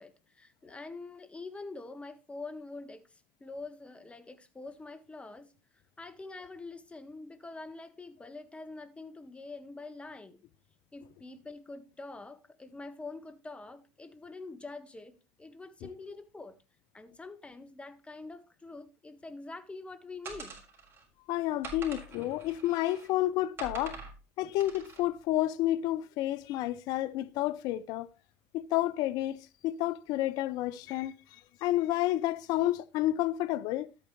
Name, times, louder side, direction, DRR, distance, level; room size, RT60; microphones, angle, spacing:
voice 1, 0.0-5.5 6.0-10.4 10.9-16.6 16.9-20.6 23.4-23.5, left 3 dB, 15° left, 1.5 m, -45 dB
sound 1, 20.2-21.0 21.6-23.1 23.6-24.1 24.6-25.0, right 5 dB, 35° right, 4.4 m, -44 dB
voice 2, 21.3-24.0 24.4-28.1 28.5-29.4 29.6-31.1 31.6-33.9, left 14 dB, 70° left, 0.6 m, -30 dB
13.0 x 8.8 x 3.1 m
supercardioid pair, 80°, 7 cm